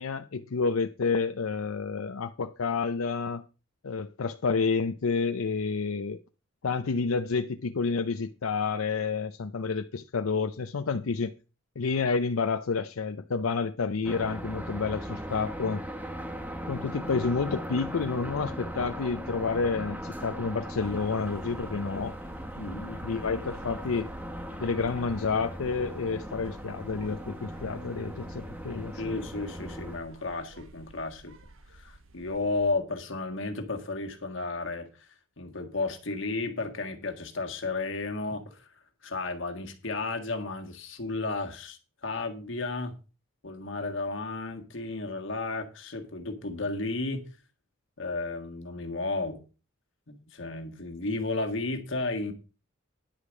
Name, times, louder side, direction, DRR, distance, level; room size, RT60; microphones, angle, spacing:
voice 1, 0.0-3.4 3.8-6.2 6.6-11.3 11.8-15.8 16.7-22.1 23.0-24.1 24.6-29.1, left 4 dB, 90° left, 0.6 m, -29 dB
sound 1, 14.0-30.0, equal, 10° right, 1.0 m, -38 dB
sound 2, 20.7-32.7, right 2 dB, 70° right, 1.3 m, -52 dB
voice 2, 22.6-23.0 29.0-31.4 31.7-35.1 35.4-38.7 39.0-42.9 43.4-47.3 48.0-49.4 50.1-52.3, left 3 dB, 65° left, 1.6 m, -33 dB
10.5 x 4.9 x 7.2 m
head